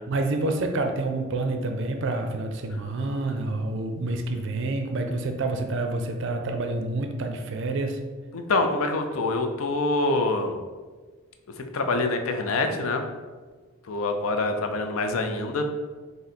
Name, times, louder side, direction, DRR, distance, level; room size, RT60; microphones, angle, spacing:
voice 1, 0.1-8.0, right 2 dB, 55° right, 5 dB, 0.4 m, -28 dB
voice 2, 8.3-10.6 11.6-13.0 13.9-15.6, left 2 dB, 70° left, 6 dB, 0.5 m, -25 dB
3.9 x 2.7 x 4.1 m, 1.4 s
head